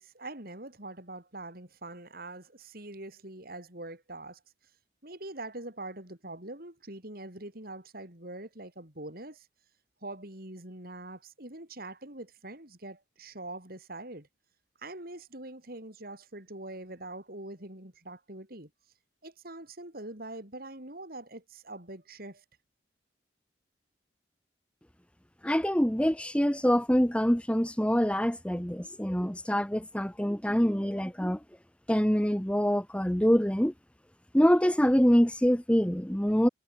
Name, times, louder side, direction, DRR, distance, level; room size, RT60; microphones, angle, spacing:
voice 1, 0.0-4.4 5.0-9.5 10.0-14.3 14.8-18.7 19.2-22.4, right 2 dB, 55° right, 5.7 m, -43 dB
voice 2, 25.4-31.4 31.9-33.7 34.3-36.5, equal, 5° left, 1.4 m, -25 dB
head